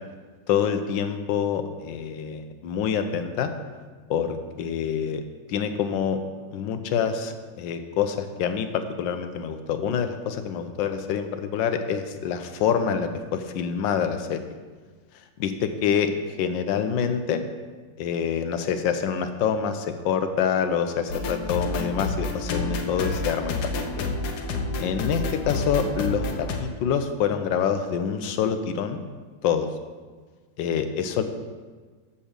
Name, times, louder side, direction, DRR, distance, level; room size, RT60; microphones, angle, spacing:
voice 1, 0.5-3.5 4.1-5.2 5.5-6.2 6.5-14.4 15.4-16.1 16.4-17.4 18.0-24.1 24.8-29.0 29.4-29.7 30.6-31.2, left 7 dB, 80° left, 9 dB, 1.4 m, -26 dB
sound 1, 21.1-26.6, left 3 dB, 65° left, 1.3 m, -29 dB
7.0 x 5.5 x 6.6 m, 1.4 s
omnidirectional pair, 2.0 m